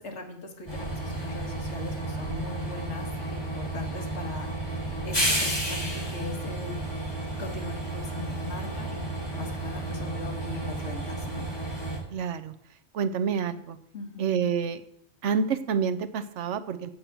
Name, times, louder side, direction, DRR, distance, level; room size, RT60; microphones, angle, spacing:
voice 1, 0.0-4.5 5.0-6.9 7.4-11.5 13.9-14.3, left 3 dB, 80° left, 3 dB, 2.0 m, -40 dB
Train, 0.7-12.0, right 1 dB, 20° left, 3.6 m, -32 dB
voice 2, 12.1-12.5 12.9-13.8 14.2-14.8 15.2-16.9, right 6 dB, 85° right, 12 dB, 1.0 m, -28 dB
8.4 x 8.0 x 6.0 m, 0.71 s
omnidirectional pair, 1.2 m